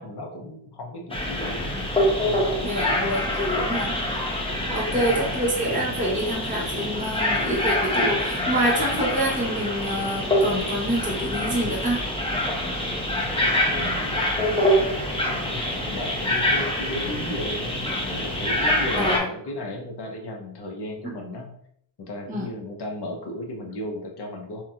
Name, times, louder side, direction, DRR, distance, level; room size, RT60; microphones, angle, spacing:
voice 1, 0.0-1.7 2.2-3.3 4.6-5.3 13.1-21.5 22.0-24.6, left 1 dB, 55° left, 2 dB, 0.8 m, -36 dB
sound 1, 1.1-19.2, left 1 dB, 10° left, 0.7 m, -25 dB
voice 2, 2.6-4.0 4.7-12.0 19.0-19.2 22.3-22.5, right 1 dB, 15° right, -4 dB, 0.9 m, -26 dB
3.0 x 2.6 x 2.4 m, 0.68 s
cardioid pair, 55°, 48 cm